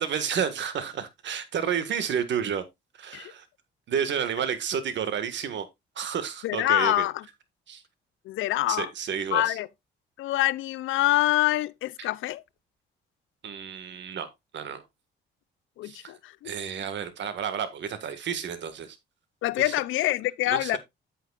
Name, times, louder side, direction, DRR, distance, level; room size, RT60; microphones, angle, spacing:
voice 1, 0.0-2.6 3.0-3.4 3.9-5.7 5.9-7.0 7.7-7.8 8.7-9.6 13.4-14.8 15.8-16.1 16.4-19.0 19.6-19.7 20.5-20.8, right 7 dB, 65° right, 1.7 m, -31 dB
voice 2, 6.4-7.2 8.3-8.9 9.3-9.7 10.2-12.4 15.8-16.5 19.4-20.8, left 16 dB, 80° left, 0.5 m, -25 dB
9.1 x 8.8 x 2.4 m
cardioid pair, 90°, 20 cm